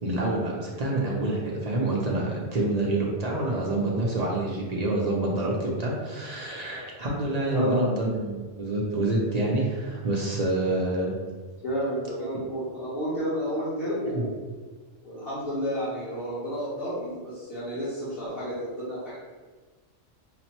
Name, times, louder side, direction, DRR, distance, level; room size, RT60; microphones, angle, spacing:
voice 1, 0.0-11.1 12.3-12.5 14.1-14.2, right 2 dB, 45° right, -3 dB, 0.6 m, -27 dB
voice 2, 7.4-7.8 11.6-14.4 15.0-19.2, equal, 50° left, -11 dB, 1.1 m, -31 dB
5.8 x 2.0 x 2.9 m, 1.4 s
omnidirectional pair, 1.2 m